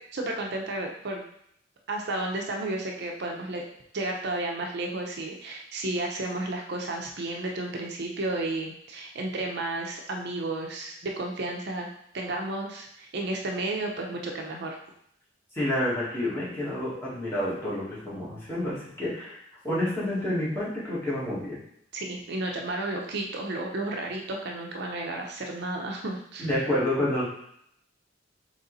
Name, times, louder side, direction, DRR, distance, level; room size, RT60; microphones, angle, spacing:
voice 1, 0.1-1.2 1.9-3.6 3.9-11.9 12.1-14.8 21.9-26.5, right 2 dB, 60° right, 1 dB, 0.6 m, -32 dB
voice 2, 15.5-19.4 19.6-21.6 26.4-27.2, left 1 dB, 15° left, -9 dB, 1.8 m, -29 dB
4.1 x 3.1 x 4.0 m, 0.72 s
head